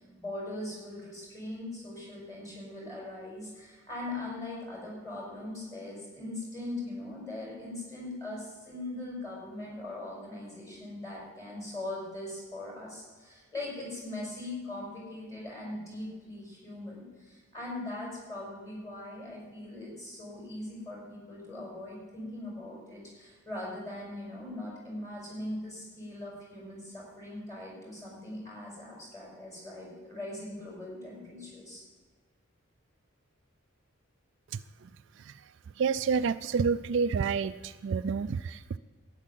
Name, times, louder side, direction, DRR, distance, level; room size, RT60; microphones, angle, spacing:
voice 1, 0.2-31.8, left 2 dB, 15° left, -3 dB, 5.1 m, -40 dB
voice 2, 35.8-38.8, right 5 dB, 60° right, 13 dB, 0.3 m, -29 dB
12.5 x 9.9 x 7.4 m, 1.4 s
head